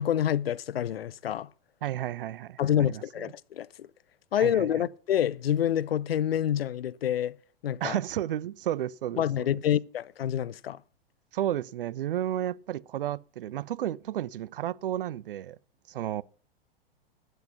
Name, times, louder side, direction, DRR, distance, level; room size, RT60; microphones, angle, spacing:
voice 1, 0.0-1.5 2.6-3.9 4.3-7.4 7.6-8.0 9.2-10.8, left 10 dB, 75° left, 0.5 m, -27 dB
voice 2, 1.8-2.6 2.9-3.0 4.4-4.8 7.8-9.2 11.3-15.6 15.9-16.2, right 12 dB, 65° right, 0.5 m, -32 dB
11.5 x 8.2 x 5.8 m
figure-of-eight pair, 100°, 30 cm